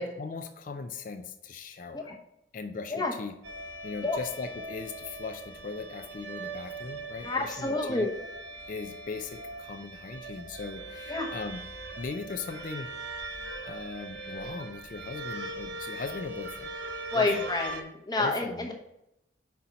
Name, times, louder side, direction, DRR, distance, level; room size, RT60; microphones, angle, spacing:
voice 1, 0.2-2.2 2.5-3.4 3.8-8.1 8.7-11.6 12.0-12.9 13.6-16.8 17.1-17.5 18.2-18.7, left 4 dB, 40° left, 7 dB, 0.4 m, -39 dB
sound 1, 3.4-17.8, right 2 dB, 65° right, 0.9 m, -40 dB
voice 2, 7.2-8.1 11.1-11.3 17.1-18.7, left 2 dB, 20° left, 2 dB, 0.9 m, -29 dB
5.5 x 4.4 x 5.1 m, 0.83 s
head